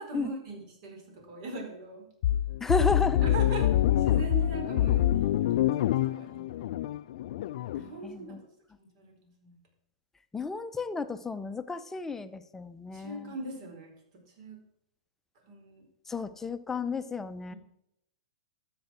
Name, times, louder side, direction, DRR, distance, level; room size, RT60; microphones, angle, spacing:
voice 1, 0.0-2.1 3.2-3.7 4.0-6.9 7.7-8.4 8.9-9.1 9.4-9.5 12.9-13.9 14.4-14.6 15.4-15.8 17.5-17.6, right 3 dB, 55° right, 2 dB, 4.6 m, -40 dB
sound 1, 2.2-7.9, left 13 dB, 60° left, 0.4 m, -26 dB
voice 2, 2.6-3.3 8.0-8.4 10.3-13.3 16.1-17.5, left 3 dB, 10° left, 10 dB, 0.7 m, -32 dB
13.0 x 7.8 x 4.4 m, 0.79 s
hypercardioid pair, 125°, 4 cm